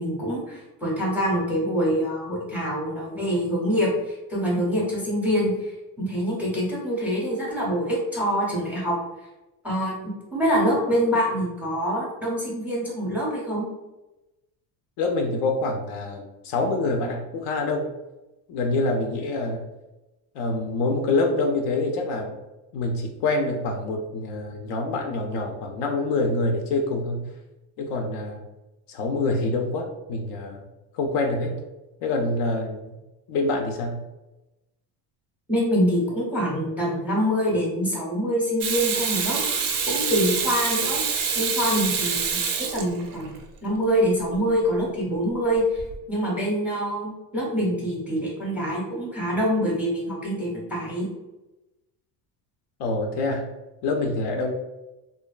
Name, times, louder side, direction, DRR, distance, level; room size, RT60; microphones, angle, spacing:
voice 1, 0.0-9.0 9.6-13.7 35.5-39.4 39.9-41.0 41.3-43.4 43.6-45.8 46.1-51.1, equal, 5° right, -4 dB, 0.6 m, -25 dB
voice 2, 15.0-17.9 18.5-19.7 20.3-22.4 22.7-27.2 27.8-28.4 28.9-30.6 30.9-31.6 32.0-33.0 33.3-34.0 52.8-53.5 53.8-54.5, left 2 dB, 60° left, 3 dB, 0.5 m, -26 dB
Water tap faucet / Sink (filling or washing), 38.6-43.4 45.8-45.9, right 6 dB, 45° right, 0.5 m, -26 dB
2.5 x 2.2 x 2.3 m, 1.0 s
cardioid pair, 120°, 47 cm